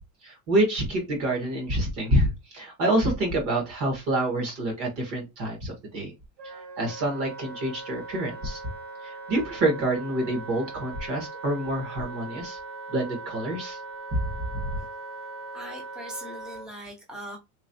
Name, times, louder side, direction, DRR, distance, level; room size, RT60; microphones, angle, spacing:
voice 1, 0.2-6.1 6.4-8.6 9.0-12.6 12.9-13.8 14.1-14.2, right 1 dB, 40° right, 1.2 m, -27 dB
Wind instrument woodwind instrument, 6.4-16.7, right 3 dB, 80° right, 1.8 m, -40 dB
voice 2, 15.5-17.4, equal, ahead, 0.4 m, -40 dB
3.5 x 3.0 x 2.6 m
cardioid pair, 175°, 38 cm